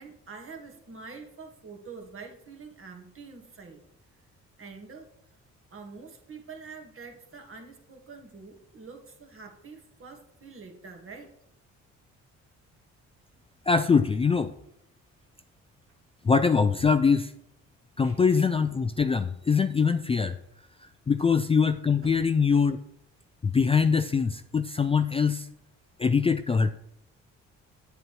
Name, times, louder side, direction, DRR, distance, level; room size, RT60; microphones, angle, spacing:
voice 1, 0.0-3.8 4.6-5.1 5.7-11.3 18.0-18.2 22.0-22.1, right 4 dB, 45° right, 3 dB, 1.8 m, -46 dB
voice 2, 13.7-14.5 16.2-17.3 18.0-20.4 21.1-22.8 23.4-25.5 26.0-26.7, left 5 dB, 20° left, 10 dB, 0.3 m, -23 dB
9.1 x 7.9 x 3.1 m, 0.77 s
cardioid pair, 90°, 30 cm